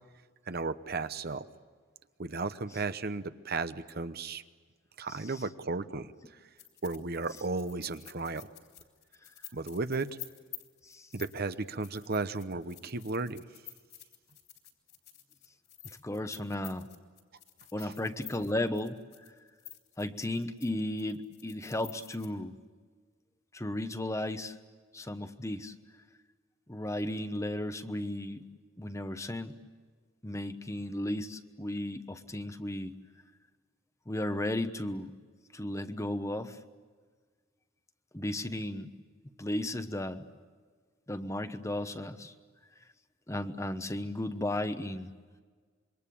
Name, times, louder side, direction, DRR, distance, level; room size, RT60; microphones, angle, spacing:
voice 1, 0.5-1.5 2.2-4.4 5.0-6.4 6.8-8.5 9.5-10.2 11.1-13.4 17.8-17.9, right 3 dB, 50° right, 11 dB, 0.9 m, -34 dB
sound 1, 6.6-20.7 21.0-22.3, left 13 dB, 55° left, 3.6 m, -50 dB
voice 2, 16.0-16.9 17.7-19.0 20.0-22.5 23.5-24.6 24.9-25.7 26.7-28.4 28.8-29.5 30.2-33.0 34.1-35.1 35.5-36.6 38.1-38.9 39.4-40.2 41.1-42.3 43.3-45.1, left 1 dB, 15° left, 9 dB, 1.1 m, -34 dB
26.5 x 23.5 x 8.6 m, 1.5 s
head